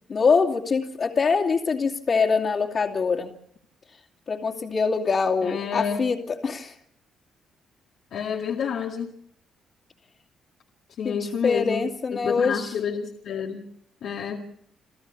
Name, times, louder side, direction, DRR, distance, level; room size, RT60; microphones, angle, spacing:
voice 1, 0.1-3.3 4.3-6.7 11.0-12.7, left 5 dB, 50° left, -3 dB, 2.5 m, -24 dB
voice 2, 5.4-6.0 8.1-9.1 11.0-11.9 12.1-13.6 14.0-14.5, left 7 dB, 75° left, 1 dB, 2.1 m, -29 dB
28.5 x 14.5 x 7.1 m, 0.68 s
cardioid pair, 90°, 0 cm